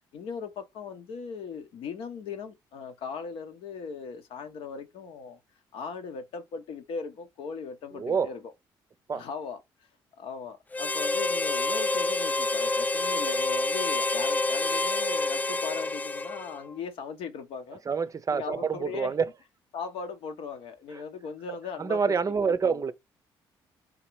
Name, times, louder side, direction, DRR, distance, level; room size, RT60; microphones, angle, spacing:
voice 1, 0.1-5.4 5.7-8.4 9.1-9.6 10.2-17.8 18.3-19.1 19.7-22.1 22.4-22.8, left 5 dB, 75° left, 0.9 m, -38 dB
voice 2, 8.0-8.3 9.1-9.2 17.9-19.3 20.9-21.0 21.8-22.9, right 5 dB, 35° right, 0.5 m, -27 dB
Harmonica, 10.7-16.7, left 2 dB, 15° left, 0.4 m, -28 dB
3.8 x 2.9 x 4.5 m
supercardioid pair, 65°, 10 cm